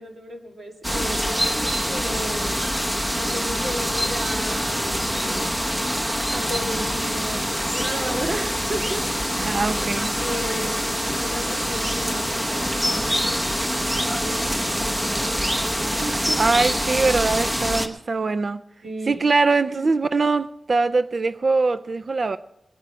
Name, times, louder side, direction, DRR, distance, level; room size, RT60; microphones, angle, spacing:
voice 1, 0.0-2.6 3.1-5.5 6.3-9.4 9.8-10.8 11.1-16.4 18.8-19.1 19.7-19.9, right 1 dB, 65° right, 2.2 m, -34 dB
sound 1, 0.8-17.9, equal, 10° right, 1.0 m, -25 dB
voice 2, 9.4-10.1 16.4-18.6 19.1-22.4, right 3 dB, 50° right, 0.4 m, -22 dB
21.0 x 9.1 x 4.6 m
wide cardioid pair, 120°, 0 cm